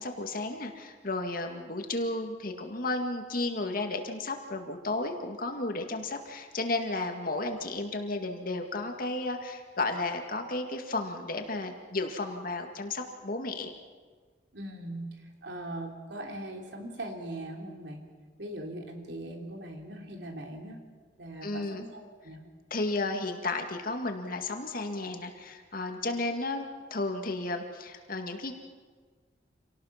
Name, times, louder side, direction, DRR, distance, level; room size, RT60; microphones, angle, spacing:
voice 1, 0.0-13.7 21.4-21.8 22.7-26.7 26.9-28.5, left 2 dB, 55° left, 5 dB, 2.1 m, -33 dB
voice 2, 14.5-18.0 18.4-20.8 21.2-22.5, right 1 dB, 90° right, 2 dB, 3.2 m, -40 dB
27.0 x 18.5 x 5.9 m, 1.5 s
head